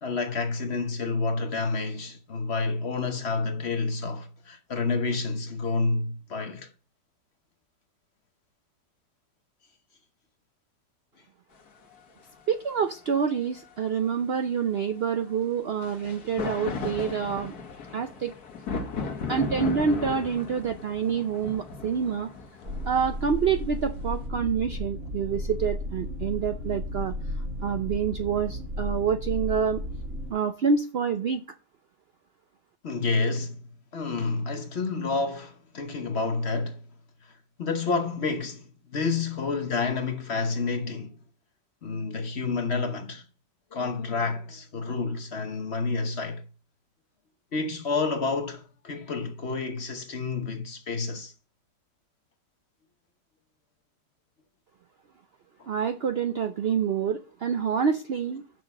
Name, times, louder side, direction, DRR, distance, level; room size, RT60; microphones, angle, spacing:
voice 1, 0.0-6.7 32.8-33.6 33.9-36.8 37.6-41.2 41.8-43.3 43.7-46.4 47.5-51.3 55.6-55.7, left 4 dB, 45° left, 1.0 m, -29 dB
sound 1, 11.9-12.0 15.8-24.2, left 4 dB, 65° left, 1.7 m, -36 dB
voice 2, 12.5-17.5 17.9-18.3 19.3-22.3 22.9-27.1 27.6-29.8 30.3-31.4 55.7-58.4, right 6 dB, 80° right, 0.5 m, -27 dB
sound 2, 22.7-30.3, left 1 dB, 45° right, 2.8 m, -34 dB
6.4 x 6.0 x 7.1 m
omnidirectional pair, 1.8 m